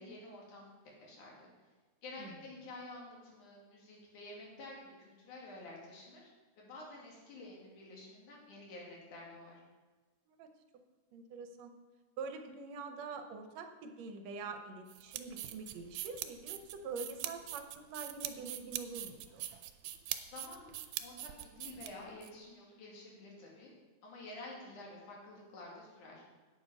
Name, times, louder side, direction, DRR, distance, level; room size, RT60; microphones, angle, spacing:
voice 1, 0.0-1.5 2.0-6.3 6.6-9.6 20.3-23.7 24.0-26.2, left 2 dB, 80° left, -3 dB, 3.8 m, -50 dB
voice 2, 11.1-11.7 12.2-19.4, right 4 dB, 70° right, 6 dB, 1.9 m, -45 dB
sound 1, 14.9-22.3, right 13 dB, 90° right, 2.1 m, -42 dB
9.0 x 8.5 x 5.5 m, 1.3 s
omnidirectional pair, 3.5 m